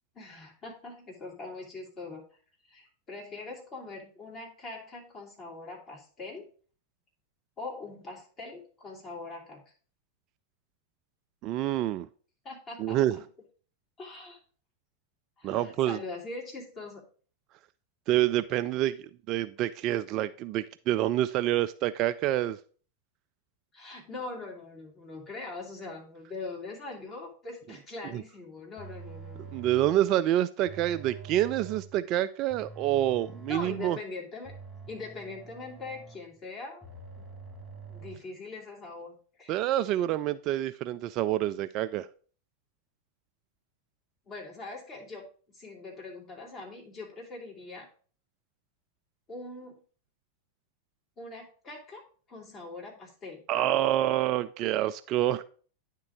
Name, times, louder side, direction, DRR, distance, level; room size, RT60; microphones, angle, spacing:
voice 1, 0.1-2.2 2.6-6.5 7.6-9.6 12.4-13.2 14.0-14.4 15.4-17.0 23.7-29.5 33.5-34.5 34.9-36.8 37.1-37.2 37.9-39.1 39.4-39.6 44.3-45.3 45.5-47.9 49.3-49.8 51.2-52.0 52.3-53.4, left 3 dB, 30° left, -2 dB, 3.0 m, -42 dB
voice 2, 11.4-12.1 12.8-13.2 15.4-16.0 18.1-22.6 28.1-28.2 29.5-34.0 39.5-42.1 53.5-55.4, right 13 dB, 40° right, 13 dB, 0.3 m, -27 dB
sound 1, 28.8-30.1 30.6-32.0 32.5-33.9 34.4-36.4 36.8-38.2, right 4 dB, 5° left, 2.4 m, -45 dB
9.7 x 3.7 x 4.9 m, 0.42 s
figure-of-eight pair, 90°, 0 cm